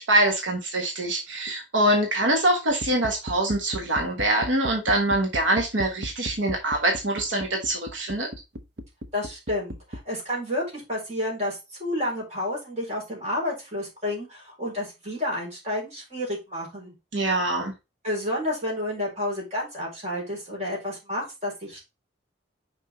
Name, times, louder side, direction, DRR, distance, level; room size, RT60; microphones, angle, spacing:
voice 1, 0.0-8.3 17.1-17.7, right 1 dB, 80° right, 2 dB, 1.3 m, -24 dB
sound 1, 2.7-10.0, equal, 55° right, 0.8 m, -37 dB
voice 2, 9.1-16.9 18.0-21.8, left 1 dB, 35° right, -3 dB, 4.0 m, -30 dB
5.8 x 4.7 x 4.3 m, 0.25 s
head